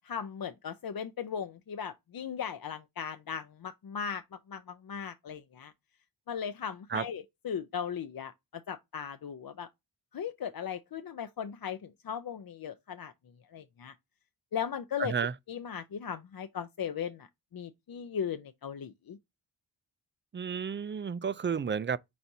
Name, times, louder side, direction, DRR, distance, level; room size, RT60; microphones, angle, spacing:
voice 1, 0.0-5.7 6.3-9.7 10.1-13.1 13.5-14.0 14.5-15.1 15.5-17.3 17.5-19.2, left 7 dB, 50° left, 0.6 m, -37 dB
voice 2, 15.0-15.3 20.3-22.0, right 6 dB, 25° right, 0.3 m, -32 dB
4.6 x 4.1 x 2.7 m
cardioid pair, 40°, 46 cm